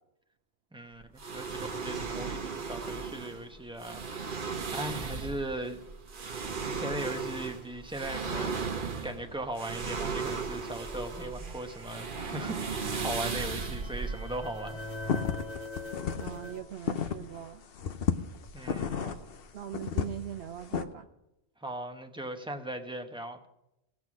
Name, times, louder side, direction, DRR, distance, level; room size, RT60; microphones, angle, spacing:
voice 1, 0.7-1.4 1.8-2.3 2.6-4.0 4.4-5.8 6.3-8.7 9.0-14.9 18.5-19.0 21.6-23.5, right 1 dB, 5° right, 4 dB, 0.9 m, -38 dB
sound 1, 1.2-15.1, right 5 dB, 55° right, 1.1 m, -36 dB
sound 2, 10.2-16.6, left 1 dB, 85° left, 3.5 m, -44 dB
sound 3, 14.7-17.4 17.8-20.9, left 7 dB, 65° left, 0.9 m, -32 dB
voice 2, 16.2-17.6 19.0-21.1, right 11 dB, 75° right, 4 dB, 0.9 m, -41 dB
17.5 x 6.2 x 6.1 m, 0.87 s
omnidirectional pair, 1.1 m